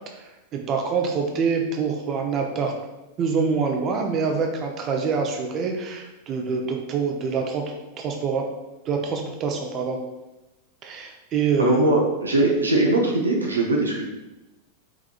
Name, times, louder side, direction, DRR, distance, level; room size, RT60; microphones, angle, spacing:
voice 1, 0.2-2.7 3.2-7.6 8.0-8.5 8.8-10.0 10.8-11.8, right 5 dB, 30° right, 2 dB, 0.7 m, -25 dB
voice 2, 11.6-14.1, right 2 dB, 75° right, -1 dB, 0.7 m, -21 dB
4.8 x 3.6 x 2.5 m, 0.99 s
figure-of-eight pair, 90°, 0 cm